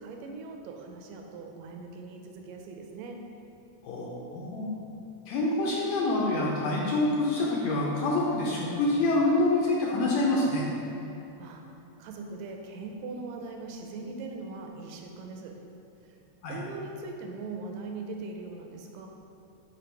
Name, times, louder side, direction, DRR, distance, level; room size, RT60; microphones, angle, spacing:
voice 1, 0.0-3.2 11.4-11.6 12.0-15.6 16.0-16.2 16.5-19.1, right 3 dB, 80° right, 2 dB, 1.8 m, -40 dB
voice 2, 3.8-4.7 5.3-10.7 16.4-16.6, left 2 dB, 80° left, -3 dB, 1.8 m, -26 dB
5.2 x 4.4 x 4.5 m, 2.9 s
omnidirectional pair, 3.4 m